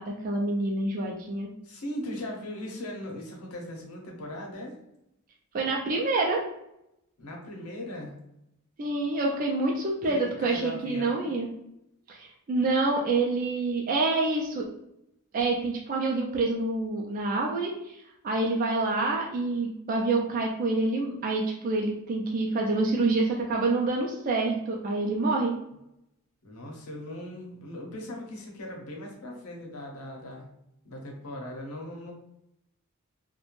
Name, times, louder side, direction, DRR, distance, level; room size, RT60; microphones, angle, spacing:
voice 1, 0.0-1.5 5.5-6.4 8.8-11.5 12.1-14.7 15.3-25.5, right 3 dB, 40° right, -1 dB, 0.3 m, -27 dB
voice 2, 1.6-4.7 7.2-8.1 10.0-11.3 26.4-30.5 30.8-32.1, left 1 dB, 85° left, 0 dB, 0.8 m, -39 dB
2.4 x 2.1 x 3.0 m, 0.82 s
head